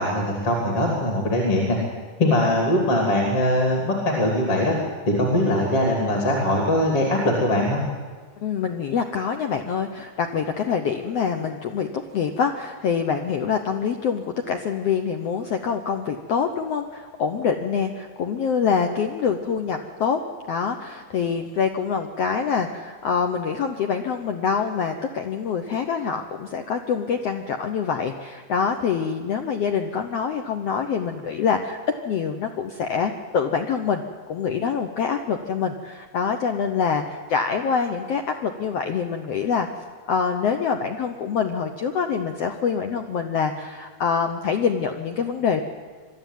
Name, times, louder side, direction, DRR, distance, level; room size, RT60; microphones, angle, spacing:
voice 1, 0.0-1.8 2.2-4.8 5.1-7.8, left 1 dB, 45° left, 0 dB, 3.8 m, -21 dB
voice 2, 8.4-20.2 20.5-31.8 32.0-34.0 34.3-39.7 40.1-45.6, left 6 dB, 70° left, 5 dB, 1.5 m, -25 dB
23.0 x 13.0 x 9.3 m, 1.5 s
omnidirectional pair, 4.0 m